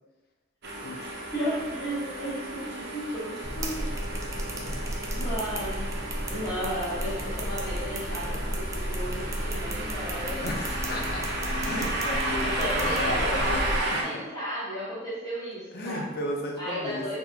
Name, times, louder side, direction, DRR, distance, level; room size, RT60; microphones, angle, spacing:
sound 1, 0.6-14.0, right 1 dB, 60° right, 0.6 m, -33 dB
voice 1, 0.9-3.9 5.2-6.0 6.3-10.5 12.3-16.0 16.6-17.2, equal, 20° left, -10 dB, 1.3 m, -34 dB
sound 2, 3.4-13.8, right 1 dB, 15° right, 0.3 m, -33 dB
voice 2, 4.5-4.8 10.4-11.3 11.6-14.0 15.7-17.0, left 1 dB, 55° left, 0 dB, 0.6 m, -34 dB
sound 3, 10.2-13.9, left 4 dB, 40° left, 1.2 m, -43 dB
3.9 x 2.9 x 2.3 m, 1.2 s
head